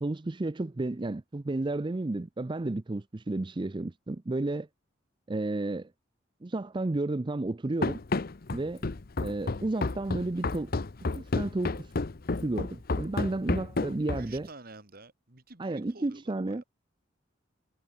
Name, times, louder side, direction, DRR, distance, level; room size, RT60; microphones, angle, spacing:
voice 1, 0.0-4.7 5.3-5.9 6.4-8.0 8.5-8.8 9.2-10.7 11.1-11.9 12.4-14.5 15.6-16.6, right 2 dB, 25° right, 0.5 m, -32 dB
Run, 7.8-14.4, left 3 dB, 50° left, 0.7 m, -31 dB
voice 2, 14.2-16.7, right 3 dB, 50° right, 2.8 m, -50 dB
head